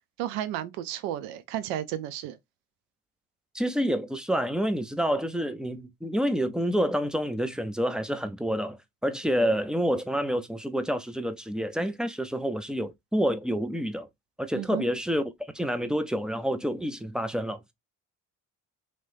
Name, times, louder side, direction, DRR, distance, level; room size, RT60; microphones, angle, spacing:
voice 1, 0.2-2.4 14.5-14.9, right 12 dB, 65° right, 0.6 m, -33 dB
voice 2, 3.5-8.8 9.0-14.1 14.4-15.2 15.5-17.6, equal, ahead, 0.4 m, -28 dB
3.0 x 2.9 x 2.5 m
hypercardioid pair, 50°, 45 cm